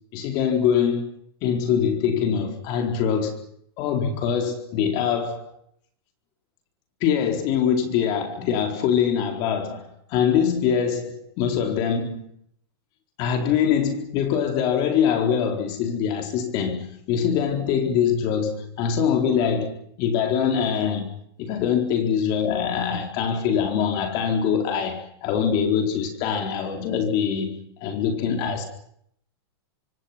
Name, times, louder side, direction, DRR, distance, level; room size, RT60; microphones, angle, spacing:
voice 1, 0.1-1.1 1.4-3.4 3.8-5.5 7.0-12.3 13.2-21.1 21.4-28.6, left 7 dB, 35° left, 4.3 m, -23 dB
29.0 x 26.0 x 6.0 m
supercardioid pair, 165°, 14 cm